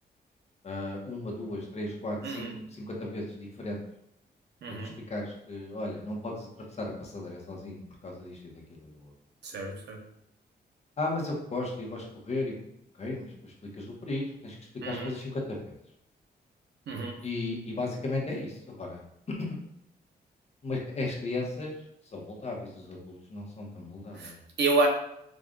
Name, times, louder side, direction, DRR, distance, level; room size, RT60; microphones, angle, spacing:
voice 1, 0.6-3.8 4.8-9.1 11.0-12.6 13.0-14.6 14.8-15.7 17.2-19.0 20.6-21.7 22.1-24.4, left 2 dB, 40° left, -1 dB, 1.0 m, -36 dB
voice 2, 4.6-4.9 9.4-10.0 14.8-15.1 16.9-17.2 24.1-24.9, right 3 dB, 85° right, 3 dB, 0.8 m, -29 dB
5.0 x 2.4 x 3.8 m, 0.77 s
wide cardioid pair, 135°, 17 cm